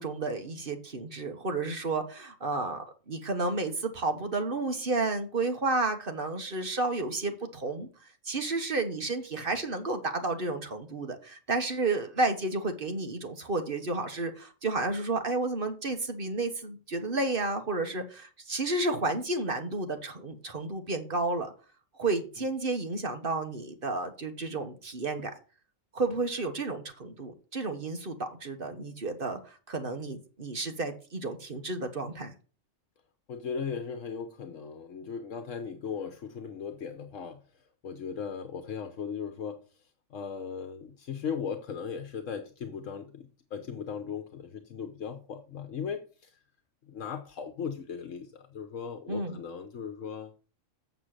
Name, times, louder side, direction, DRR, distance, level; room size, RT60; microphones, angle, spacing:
voice 1, 0.0-7.9 8.2-21.5 22.0-25.3 25.9-29.4 29.7-32.3 49.1-49.4, right 3 dB, 45° right, 6 dB, 1.6 m, -31 dB
voice 2, 33.3-37.4 37.8-39.6 40.1-46.4 46.9-50.3, left 6 dB, 75° left, 6 dB, 1.3 m, -37 dB
7.4 x 6.8 x 6.6 m, 0.36 s
omnidirectional pair, 1.3 m